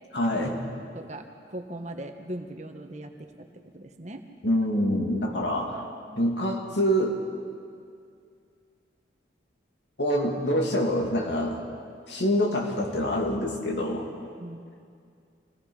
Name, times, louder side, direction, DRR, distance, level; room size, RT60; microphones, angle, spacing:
voice 1, 0.1-0.6 4.4-5.8 6.2-7.2 10.0-11.6 12.1-14.1, equal, 75° left, 0 dB, 2.7 m, -26 dB
voice 2, 0.9-3.5 3.7-4.2 5.9-6.2 14.4-14.7, right 1 dB, 40° right, 5 dB, 1.4 m, -39 dB
25.5 x 18.5 x 5.6 m, 2.3 s
head